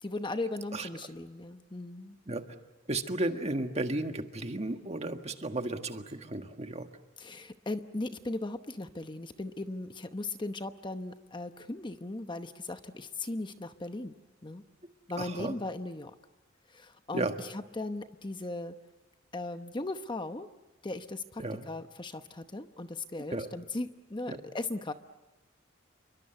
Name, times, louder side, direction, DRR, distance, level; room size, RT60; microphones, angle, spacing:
voice 1, 0.0-2.2 7.2-14.1 14.4-14.6 15.1-16.1 16.7-18.7 19.3-20.5 20.8-24.9, left 2 dB, 25° left, 9 dB, 0.9 m, -38 dB
voice 2, 2.9-6.9 15.2-15.5 17.1-17.3 21.4-21.7 23.3-23.5 24.3-24.4, right 2 dB, 35° right, 6 dB, 1.7 m, -33 dB
29.0 x 23.5 x 8.0 m, 1.1 s
head